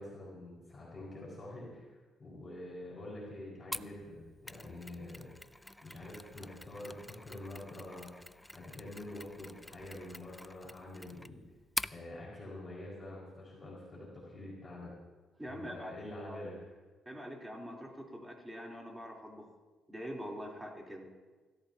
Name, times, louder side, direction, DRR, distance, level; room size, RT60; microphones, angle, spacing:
voice 1, 0.0-1.9 2.2-5.3 5.8-8.1 8.5-11.4 11.9-14.9 15.4-16.5, left 1 dB, 30° left, -5 dB, 5.3 m, -46 dB
Mechanisms, 3.7-12.0, left 1 dB, 5° left, 0.4 m, -45 dB
voice 2, 15.4-16.4 17.1-19.5 19.9-21.1, equal, 10° right, -1 dB, 3.6 m, -44 dB
24.5 x 14.5 x 2.9 m, 1.3 s
cardioid pair, 90°, 0 cm